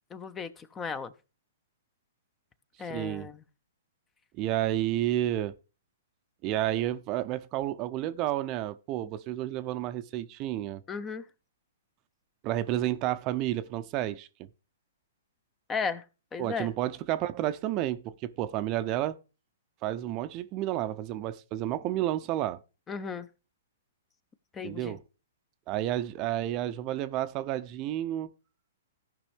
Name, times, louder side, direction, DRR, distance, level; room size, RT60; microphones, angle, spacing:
voice 1, 0.1-1.1 2.8-3.4 10.9-11.2 15.7-16.0 16.3-16.7 22.9-23.3 24.5-25.0, left 5 dB, 20° left, 0.6 m, -35 dB
voice 2, 2.9-3.3 4.4-5.5 6.4-10.8 12.4-14.3 16.4-19.2 19.8-22.6 24.6-25.0 25.7-28.3, right 13 dB, 35° right, 0.5 m, -31 dB
15.5 x 5.3 x 3.5 m
hypercardioid pair, 130°, 0 cm